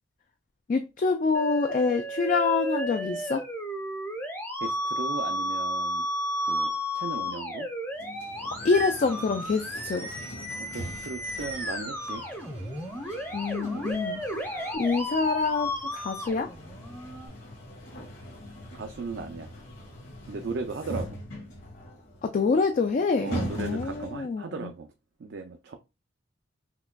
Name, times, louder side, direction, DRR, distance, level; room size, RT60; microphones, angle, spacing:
voice 1, 0.7-3.4 8.6-10.1 13.3-16.5 22.2-24.7, left 4 dB, 40° left, 0.3 m, -26 dB
Musical instrument, 1.3-17.3, equal, 10° left, 0.7 m, -33 dB
voice 2, 4.6-6.1 6.5-7.7 10.6-12.2 18.7-19.5 20.3-21.2 23.2-24.9 25.2-25.7, right 4 dB, 60° right, 0.4 m, -36 dB
sound 1, 7.9-24.4, equal, 70° left, 1.8 m, -42 dB
sound 2, 8.6-14.8, right 2 dB, 80° right, 1.2 m, -50 dB
5.7 x 2.2 x 2.2 m
head